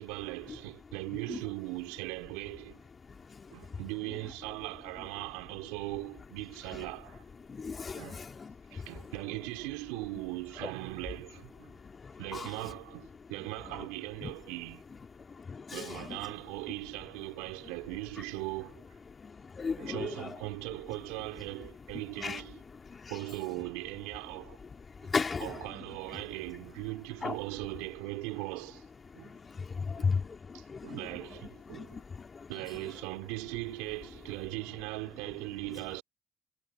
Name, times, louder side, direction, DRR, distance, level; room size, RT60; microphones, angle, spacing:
voice 1, 0.0-2.8 3.5-7.2 7.9-8.2 8.7-11.7 12.2-14.8 15.7-18.8 19.8-22.6 23.1-24.6 25.0-28.9 29.1-29.3 30.0-30.1 30.5-32.0 32.5-36.0, right 26 dB, 80° right, 4.8 m, -39 dB
voice 2, 7.5-8.8 14.2-14.3 15.5-15.8 19.2-20.1 22.2-22.4 22.9-23.1 25.1-25.5 27.2-27.3 29.5-31.0 31.9-32.3, left 5 dB, 35° left, 3.1 m, -34 dB
hypercardioid pair, 65°, 0 cm